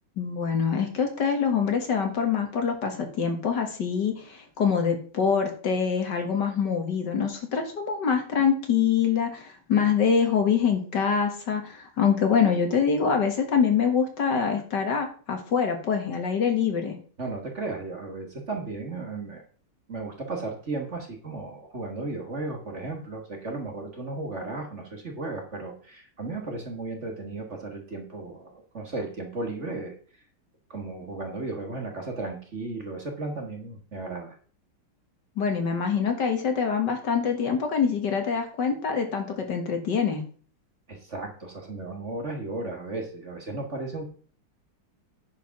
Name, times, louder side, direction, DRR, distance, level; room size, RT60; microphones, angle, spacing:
voice 1, 0.2-17.0 35.4-40.2, left 6 dB, 55° left, 4 dB, 2.2 m, -25 dB
voice 2, 17.2-19.4 19.9-29.9 30.7-34.4 40.9-44.0, right 3 dB, 35° right, 3 dB, 1.8 m, -35 dB
10.5 x 5.0 x 5.9 m, 0.42 s
omnidirectional pair, 2.2 m